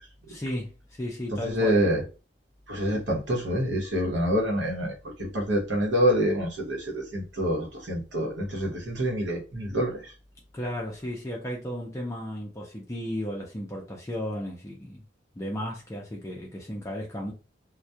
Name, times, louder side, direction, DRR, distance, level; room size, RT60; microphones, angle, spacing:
voice 1, 0.3-1.8 10.5-15.0 15.3-17.3, equal, 15° left, 0.5 m, -34 dB
voice 2, 1.3-2.0 2.7-10.1, equal, 75° right, 0.9 m, -27 dB
2.2 x 2.1 x 2.7 m
head